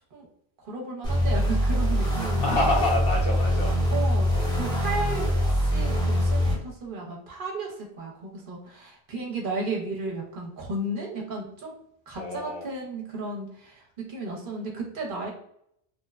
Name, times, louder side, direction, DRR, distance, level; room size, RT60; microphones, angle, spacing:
voice 1, 0.6-2.7 3.9-5.3 5.5-11.7 12.1-15.3, right 2 dB, 55° right, -1 dB, 0.8 m, -34 dB
sound 1, 1.0-6.6, equal, 5° left, 0.7 m, -24 dB
voice 2, 2.2-3.8 12.2-12.7, left 2 dB, 65° left, -1 dB, 0.9 m, -27 dB
2.9 x 2.1 x 2.3 m, 0.71 s
omnidirectional pair, 1.1 m